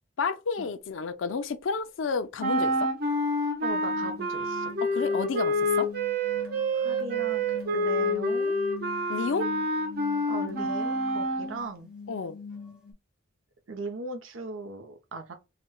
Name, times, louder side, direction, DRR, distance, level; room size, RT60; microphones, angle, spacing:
voice 1, 0.2-2.9 4.8-5.9 9.1-9.5 12.1-12.4, left 5 dB, 70° left, 0.4 m, -31 dB
sound 1, 2.4-11.6, equal, 50° right, 0.8 m, -28 dB
voice 2, 3.6-4.7 6.7-7.4 7.7-8.6 10.2-11.9 13.7-15.3, right 3 dB, 85° right, 0.7 m, -38 dB
sound 2, 3.7-12.9, left 4 dB, 5° right, 0.7 m, -44 dB
4.1 x 2.1 x 2.2 m
head